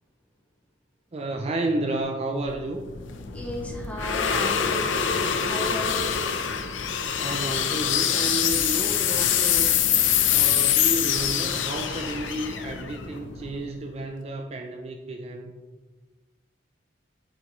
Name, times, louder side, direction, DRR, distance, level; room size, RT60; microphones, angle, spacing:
voice 1, 1.1-2.8 7.2-9.7 10.3-15.5, right 2 dB, 35° right, 3 dB, 0.4 m, -31 dB
sound 1, 2.5-13.7, left 9 dB, 90° left, 0.6 m, -25 dB
voice 2, 3.3-4.9 5.4-6.2, equal, 5° left, -1 dB, 1.1 m, -35 dB
7.7 x 5.3 x 3.0 m, 1.3 s
head